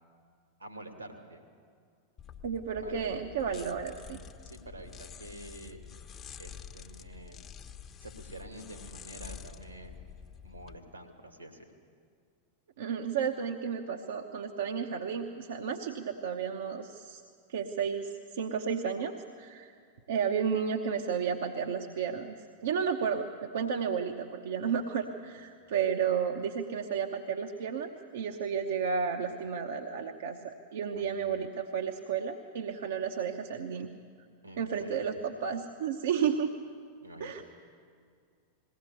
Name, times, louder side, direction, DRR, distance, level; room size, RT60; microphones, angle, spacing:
voice 1, 0.6-1.5 2.8-3.3 4.4-5.8 6.4-7.4 8.0-9.9 10.4-11.7 30.9-31.2 34.4-35.0 37.0-37.4, right 1 dB, 85° right, 5 dB, 2.5 m, -47 dB
sound 1, 2.2-10.7, left 8 dB, 25° left, 1.0 m, -48 dB
voice 2, 2.4-4.2 12.8-17.2 17.5-19.7 20.1-22.3 22.6-33.9 34.6-36.5 37.2-37.4, right 7 dB, 60° right, 3 dB, 1.0 m, -32 dB
20.5 x 17.0 x 8.3 m, 2.2 s
figure-of-eight pair, 90°, 0 cm